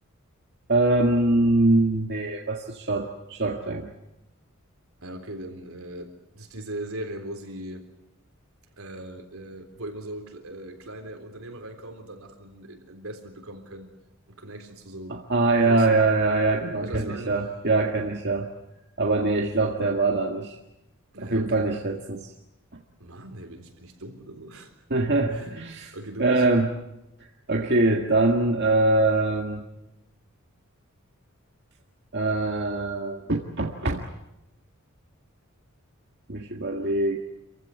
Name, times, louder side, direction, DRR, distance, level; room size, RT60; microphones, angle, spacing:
voice 1, 0.7-3.9 15.3-18.5 19.0-20.6 21.2-22.3 24.9-25.9 26.2-26.7 27.5-29.7 32.1-34.0 36.3-37.2, right 2 dB, 50° right, 1 dB, 1.8 m, -23 dB
voice 2, 5.0-7.9 8.8-13.9 14.3-15.2 15.6-16.0 16.8-17.4 21.1-21.7 23.0-24.7 25.3-25.5 25.9-26.5, right 1 dB, 75° right, 5 dB, 3.8 m, -39 dB
27.5 x 15.5 x 9.7 m, 0.92 s
head